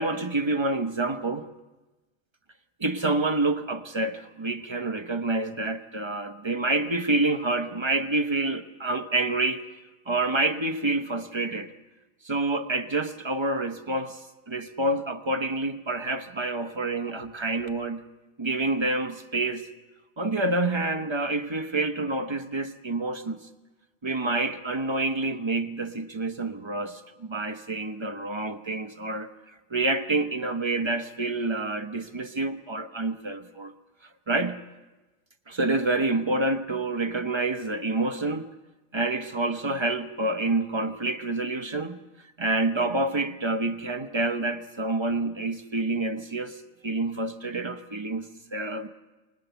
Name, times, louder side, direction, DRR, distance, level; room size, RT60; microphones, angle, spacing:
voice 1, 0.0-1.5 2.8-9.6 10.1-11.7 12.2-14.2 14.5-18.0 18.4-19.7 20.2-23.4 24.0-29.3 29.7-33.7 34.3-34.6 35.5-38.5 38.9-42.0 42.4-46.6 46.8-48.9, right 2 dB, 25° right, 8 dB, 0.9 m, -28 dB
24.5 x 20.0 x 7.0 m, 1.1 s
omnidirectional pair, 1.4 m